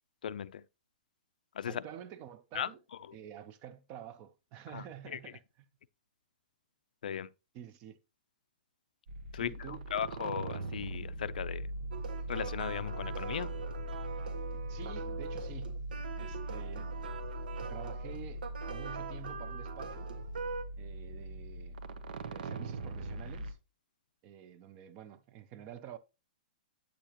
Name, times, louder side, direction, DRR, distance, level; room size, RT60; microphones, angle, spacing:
voice 1, 0.2-0.6 1.5-1.8 2.5-2.7 4.7-5.2 7.0-7.3 9.3-11.7 12.3-13.5, left 9 dB, 65° left, 0.5 m, -37 dB
voice 2, 1.7-2.8 3.1-5.7 7.5-8.0 9.3-9.9 14.5-15.8 16.2-16.9 17.6-20.1 20.8-21.8 22.3-23.6 24.2-26.0, right 10 dB, 25° right, 0.6 m, -49 dB
sound 1, 9.1-23.5, right 1 dB, 65° right, 1.0 m, -41 dB
sound 2, 11.9-20.6, right 6 dB, 85° right, 1.6 m, -43 dB
8.9 x 6.8 x 2.9 m
hypercardioid pair, 170°, 5 cm